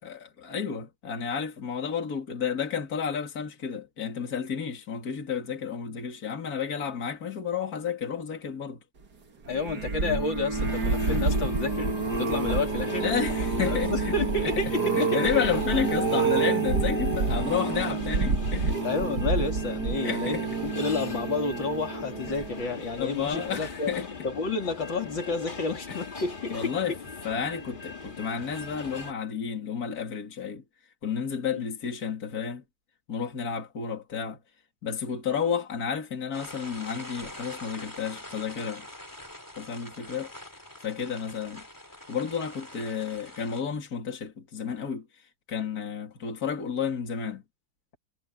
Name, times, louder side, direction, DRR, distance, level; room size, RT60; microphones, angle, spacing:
voice 1, 0.0-8.8 13.0-14.1 14.6-18.9 20.0-20.5 23.0-24.1 25.9-26.0 26.5-27.0 27.2-30.6 31.0-32.6 33.1-34.4 34.8-38.9 39.6-40.3 40.8-41.6 42.1-47.4, left 7 dB, 50° left, 3.0 m, -31 dB
voice 2, 9.5-11.9 12.2-13.1 13.6-15.3 18.8-20.4 20.6-23.9 24.2-26.7 31.5-31.6, left 3 dB, 70° left, 3.8 m, -30 dB
sound 1, 9.5-22.8 23.3-23.7 23.9-24.0, right 4 dB, 55° right, 2.5 m, -28 dB
sound 2, 10.5-29.1, left 4 dB, 25° left, 1.7 m, -40 dB
sound 3, 36.3-43.6, left 1 dB, 10° left, 2.7 m, -44 dB
omnidirectional pair, 2.1 m